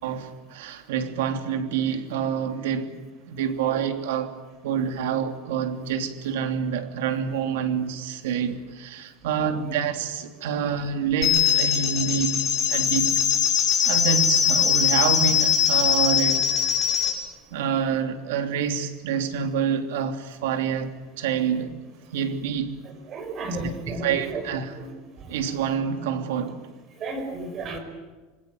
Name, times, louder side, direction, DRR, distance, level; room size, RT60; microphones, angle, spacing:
voice 1, 0.0-2.9 3.3-4.4 4.6-12.4 12.7-13.2 13.8-16.7 17.5-21.7 22.1-22.7 23.6-24.8 25.3-26.7, right 7 dB, 85° right, 3.0 m, -27 dB
sound 1, 11.2-17.1, left 9 dB, 30° left, 6.4 m, -21 dB
voice 2, 23.1-24.2 24.8-24.9 27.0-27.8, right 2 dB, 30° right, 5.1 m, -32 dB
26.5 x 21.0 x 9.4 m
supercardioid pair, 165°, 0 cm